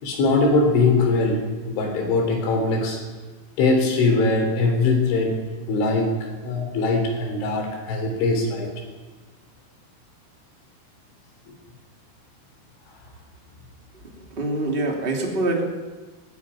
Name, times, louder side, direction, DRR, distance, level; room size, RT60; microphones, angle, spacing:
voice 1, 0.0-1.4 1.7-3.0 3.6-5.4 5.7-8.7, left 3 dB, 75° left, 3 dB, 5.9 m, -21 dB
voice 2, 13.9-15.6, right 2 dB, 15° right, 1 dB, 1.9 m, -25 dB
19.5 x 14.0 x 9.7 m, 1.3 s
omnidirectional pair, 5.5 m